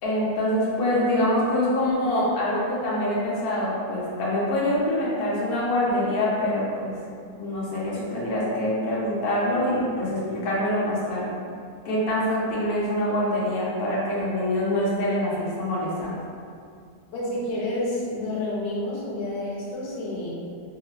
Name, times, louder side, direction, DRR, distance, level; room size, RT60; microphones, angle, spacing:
voice 1, 0.0-7.0 7.3-11.3 11.8-16.1, left 1 dB, 65° left, -6 dB, 0.6 m, -25 dB
voice 2, 17.1-20.3, left 1 dB, 90° left, -5 dB, 1.3 m, -29 dB
3.0 x 2.3 x 2.3 m, 2.3 s
omnidirectional pair, 1.9 m